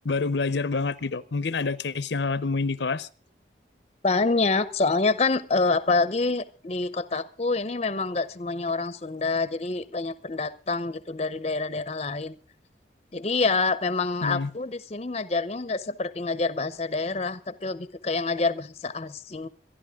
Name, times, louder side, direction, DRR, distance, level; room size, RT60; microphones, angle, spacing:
voice 1, 0.0-3.1 14.2-14.5, left 4 dB, 70° left, 0.7 m, -27 dB
voice 2, 4.0-12.4 13.1-19.5, left 3 dB, 35° left, 0.7 m, -27 dB
26.5 x 11.0 x 3.6 m
head